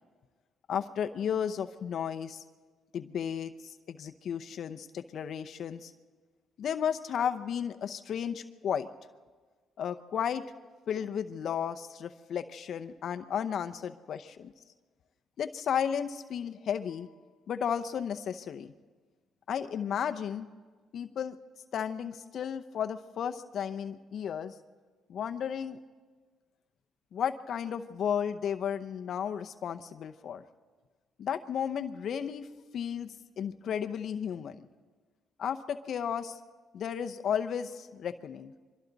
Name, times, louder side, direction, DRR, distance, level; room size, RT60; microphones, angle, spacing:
voice 1, 0.7-2.4 2.9-5.9 6.6-8.9 9.8-10.4 10.9-14.5 15.4-17.1 17.5-18.7 19.5-20.5 20.9-21.4 21.7-24.5 25.1-25.8 27.1-30.4 31.2-32.5 32.7-34.7 35.4-36.4 36.7-38.5, left 8 dB, 65° left, 8 dB, 0.8 m, -33 dB
28.0 x 23.5 x 4.1 m, 1.4 s
cardioid pair, 90°, 0 cm